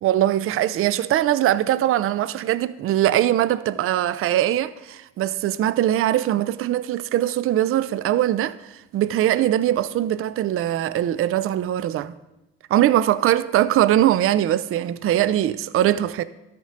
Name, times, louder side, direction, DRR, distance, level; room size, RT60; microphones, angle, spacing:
voice 1, 0.0-12.1 12.7-16.2, right 12 dB, 45° right, 0.5 m, -21 dB
13.0 x 4.4 x 5.0 m
hypercardioid pair, 60°, 31 cm